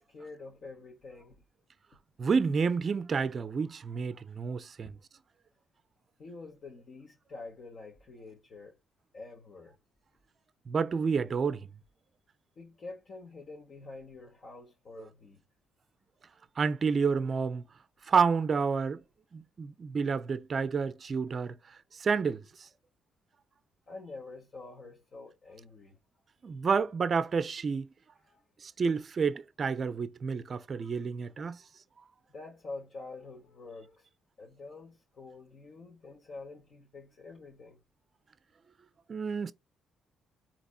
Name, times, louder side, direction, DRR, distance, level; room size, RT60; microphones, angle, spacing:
voice 1, 0.1-1.4 4.8-4.9 6.2-8.8 9.1-9.8 12.6-15.4 23.9-26.0 28.2-28.4 32.3-34.1 34.4-37.8, left 3 dB, 50° left, 1.0 m, -47 dB
voice 2, 2.2-4.9 10.7-11.7 16.6-17.6 18.1-19.0 19.3-21.6 22.0-22.4 26.4-27.9 28.6-31.6 39.1-39.5, right 5 dB, 45° right, 0.4 m, -29 dB
4.1 x 2.8 x 2.4 m
cardioid pair, 90°, 0 cm